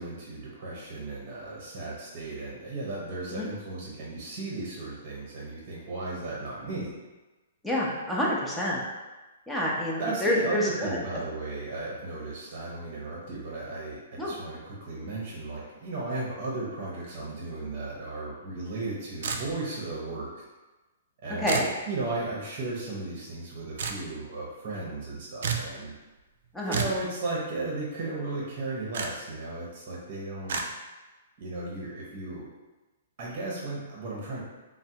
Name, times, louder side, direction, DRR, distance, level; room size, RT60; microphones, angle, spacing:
voice 1, 0.0-6.9 10.0-20.4 21.2-25.9 26.6-30.6 31.4-32.5 33.2-34.4, right 2 dB, 40° right, -4 dB, 0.7 m, -35 dB
voice 2, 7.6-8.8 9.5-11.0 14.2-14.3 21.4-21.7 26.5-26.8, left 1 dB, 5° left, -5 dB, 0.5 m, -28 dB
sound 1, 19.2-19.8 21.5-21.7 23.8-24.0 25.4-25.7 26.7-27.0 28.9-29.1 30.5-30.7, right 5 dB, 65° right, 0.3 m, -30 dB
3.3 x 2.1 x 2.8 m, 1.2 s
hypercardioid pair, 150°, 0 cm